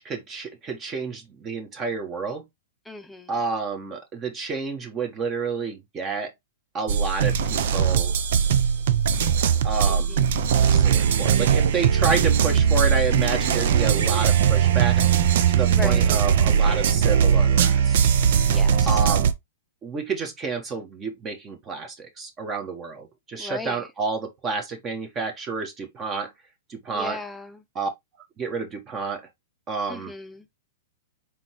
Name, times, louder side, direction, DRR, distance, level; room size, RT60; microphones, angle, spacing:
voice 1, 0.0-2.4 3.3-6.3 6.7-8.1 9.6-10.3 10.7-18.0 18.8-19.3 19.8-26.3 26.7-27.2 27.7-27.9 28.4-29.2 29.7-30.1, right 4 dB, 25° right, 1.4 m, -30 dB
voice 2, 2.9-3.4 9.9-10.4 15.7-16.1 18.5-19.0 23.4-23.9 26.9-27.6 29.9-30.5, left 3 dB, 5° left, 0.8 m, -37 dB
sound 1, 6.9-19.3, right 8 dB, 65° right, 0.7 m, -20 dB
4.6 x 3.7 x 3.1 m
hypercardioid pair, 125°, 0 cm